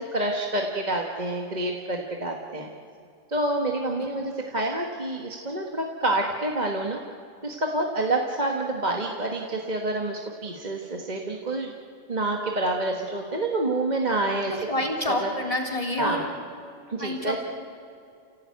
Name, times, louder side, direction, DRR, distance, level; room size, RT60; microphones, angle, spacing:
voice 1, 0.0-2.7 3.3-7.0 7.4-11.7 12.1-14.6 15.2-15.3 16.0-16.2 16.9-17.4, right 2 dB, 40° right, 1 dB, 1.6 m, -28 dB
voice 2, 14.5-16.2 17.0-17.4, left 1 dB, 30° left, 0 dB, 3.6 m, -28 dB
29.0 x 16.5 x 9.4 m, 2.5 s
omnidirectional pair, 1.2 m